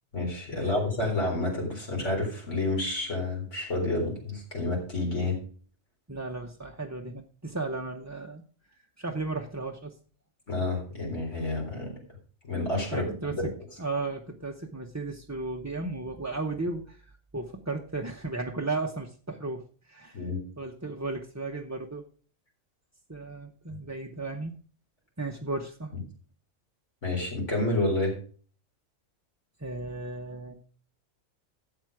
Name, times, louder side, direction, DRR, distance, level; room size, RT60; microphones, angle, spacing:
voice 1, 0.1-5.4 10.5-11.9 12.4-13.5 20.1-20.4 23.7-23.8 27.0-28.2, left 2 dB, 60° left, 0 dB, 4.4 m, -29 dB
voice 2, 6.1-8.4 9.0-9.9 12.9-13.5 13.8-20.3 20.6-22.0 23.1-24.5 25.2-25.9 29.6-30.6, right 3 dB, 15° right, 1 dB, 0.7 m, -35 dB
12.0 x 7.8 x 4.7 m, 0.42 s
omnidirectional pair, 1.4 m